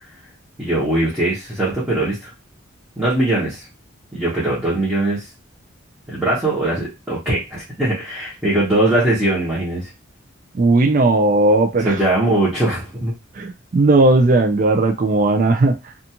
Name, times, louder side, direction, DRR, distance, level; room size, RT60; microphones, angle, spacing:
voice 1, 0.6-2.3 3.0-3.6 4.1-5.3 6.1-9.9 11.8-13.1, right 1 dB, 10° right, -9 dB, 0.9 m, -20 dB
voice 2, 10.6-12.0 13.4-15.7, right 2 dB, 40° right, 4 dB, 0.3 m, -16 dB
2.5 x 2.3 x 2.8 m, 0.25 s
head